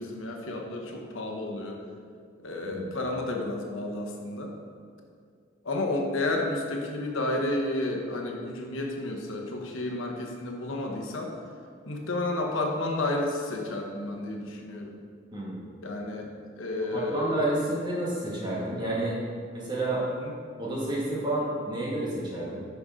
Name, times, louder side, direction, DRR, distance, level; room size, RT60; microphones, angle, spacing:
voice 1, 0.0-1.8 2.4-4.5 5.6-11.3 11.9-14.9 15.8-16.3 16.6-17.4 20.2-20.3, left 2 dB, 85° left, 1 dB, 1.1 m, -31 dB
voice 2, 16.9-19.2 19.5-20.1 20.6-22.6, right 2 dB, 20° right, -7 dB, 1.9 m, -30 dB
10.5 x 5.3 x 3.7 m, 2.2 s
head